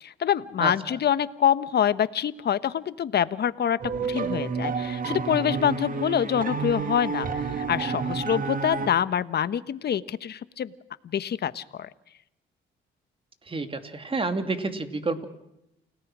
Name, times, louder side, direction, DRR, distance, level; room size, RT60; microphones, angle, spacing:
voice 1, 0.0-3.8 4.1-10.7 11.1-11.9, left 9 dB, 55° left, 14 dB, 1.2 m, -26 dB
sound 1, 3.8-8.9, right 5 dB, 45° right, 1.9 m, -30 dB
voice 2, 13.5-15.2, right 3 dB, 25° right, 8 dB, 2.7 m, -29 dB
29.5 x 18.0 x 6.2 m, 0.84 s
cardioid pair, 90°, 20 cm